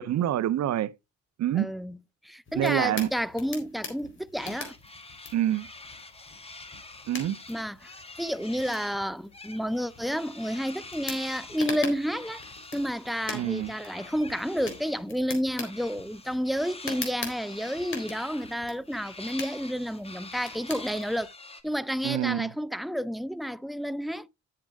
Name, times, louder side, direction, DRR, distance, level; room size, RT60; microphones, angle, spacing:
voice 1, 0.1-0.9 1.4-1.7 2.5-3.1 5.3-5.7 7.1-7.4 13.3-13.7 22.0-22.5, right 12 dB, 65° right, 0.7 m, -26 dB
voice 2, 1.5-2.0 2.2-4.7 7.5-7.9 8.2-12.4 12.7-21.3 21.6-24.3, equal, ahead, 0.4 m, -30 dB
sound 1, 2.5-21.2, left 4 dB, 40° left, 4.0 m, -43 dB
sound 2, 4.4-9.0 9.3-15.0 15.5-21.6, left 3 dB, 20° left, 1.5 m, -46 dB
10.0 x 7.7 x 3.6 m
cardioid pair, 90°, 30 cm